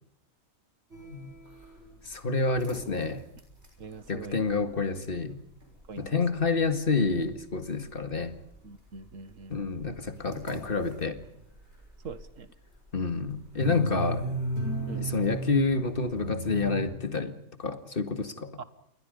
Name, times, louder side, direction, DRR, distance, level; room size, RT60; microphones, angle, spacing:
Componiendo una canción, 0.9-3.9 4.2-4.5 4.8-4.9 5.2-5.3 5.6-6.6 7.0-7.5 7.7-12.3 12.7-16.8, right 2 dB, 50° right, 6.7 m, -37 dB
voice 1, 2.0-3.2 4.1-5.4 6.0-8.4 9.5-11.2 12.9-14.3 14.9-18.5, left 4 dB, 40° left, 8 dB, 2.1 m, -28 dB
voice 2, 3.8-4.4 5.9-6.2 8.6-9.6 12.0-12.5 14.9-15.1 18.6-18.7, right 4 dB, 70° right, 12 dB, 1.9 m, -42 dB
29.0 x 21.0 x 5.3 m, 0.75 s
omnidirectional pair, 1.4 m